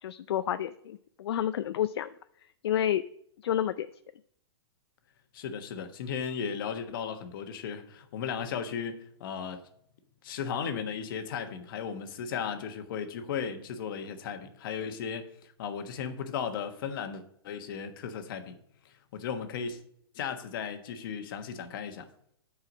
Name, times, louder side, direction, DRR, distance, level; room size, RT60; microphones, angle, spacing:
voice 1, 0.0-2.1 2.6-3.0 3.4-3.9, left 10 dB, 70° left, 0.4 m, -29 dB
voice 2, 5.3-9.6 10.2-15.3 15.6-18.5 19.1-19.8 20.1-22.1, left 7 dB, 55° left, 1.2 m, -35 dB
9.0 x 4.8 x 6.2 m
hypercardioid pair, 145°, 14 cm